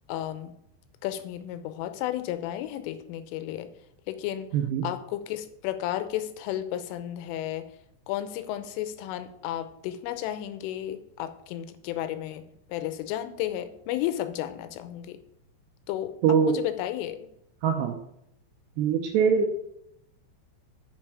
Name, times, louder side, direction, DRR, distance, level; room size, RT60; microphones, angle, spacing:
voice 1, 0.1-0.5 1.0-3.7 4.1-4.5 4.8-7.7 8.1-12.4 12.7-15.2 15.9-16.1 16.5-17.3, left 12 dB, 85° left, 10 dB, 3.3 m, -33 dB
voice 2, 4.5-4.9 16.2-16.5 17.6-18.0 18.8-19.5, right 7 dB, 80° right, 4 dB, 2.6 m, -22 dB
8.9 x 7.2 x 4.8 m, 0.75 s
omnidirectional pair, 5.6 m